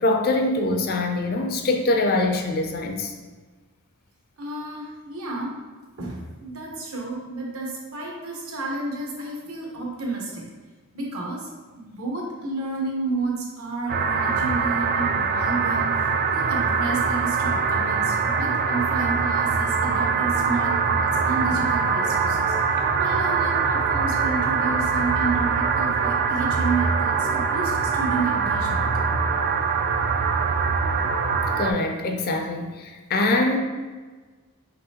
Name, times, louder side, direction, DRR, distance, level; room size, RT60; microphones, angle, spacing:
voice 1, 0.0-3.1 31.6-33.6, left 2 dB, 45° left, 4 dB, 0.5 m, -23 dB
voice 2, 4.4-5.6 6.0-10.4 10.9-11.5 11.7-16.0 16.3-28.9, right 3 dB, 65° right, -2 dB, 1.0 m, -31 dB
sound 1, 13.9-31.7, right 5 dB, 45° right, 0.3 m, -23 dB
5.2 x 3.1 x 2.8 m, 1.3 s
head